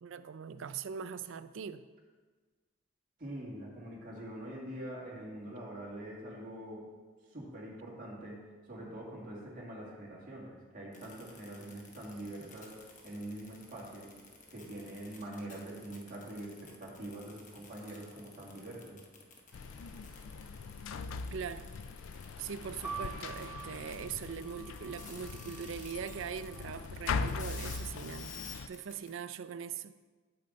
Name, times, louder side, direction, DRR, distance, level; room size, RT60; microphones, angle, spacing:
voice 1, 0.0-1.9 21.3-21.7 22.4-29.9, right 7 dB, 65° right, 0.4 m, -41 dB
voice 2, 3.2-6.9 7.3-14.1 14.5-19.0, right 1 dB, 40° right, 2.2 m, -44 dB
sound 1, 10.9-29.1, left 4 dB, 35° left, 1.0 m, -51 dB
sound 2, 19.5-28.7, left 4 dB, 75° left, 0.4 m, -41 dB
sound 3, 22.8-26.7 27.5-28.2, right 6 dB, 10° right, 0.5 m, -47 dB
8.6 x 7.8 x 4.0 m
head